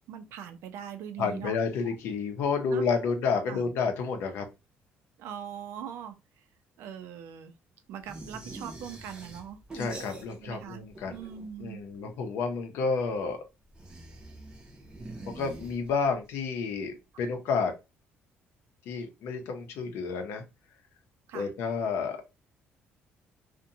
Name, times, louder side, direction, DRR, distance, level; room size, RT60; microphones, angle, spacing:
voice 1, 0.1-1.9 2.7-3.1 3.5-3.7 5.2-6.5 6.8-7.5 7.9-9.6 10.4-11.9 21.3-21.5, right 9 dB, 70° right, 0.4 m, -42 dB
voice 2, 1.2-4.5 9.7-11.1 11.6-13.4 15.3-17.7 18.9-20.4 21.3-22.2, left 5 dB, 70° left, 0.6 m, -30 dB
sound 1, 8.0-10.6 10.9-11.7 13.7-16.2, right 2 dB, 20° right, 0.5 m, -44 dB
2.6 x 2.1 x 2.7 m
cardioid pair, 170°, 4 cm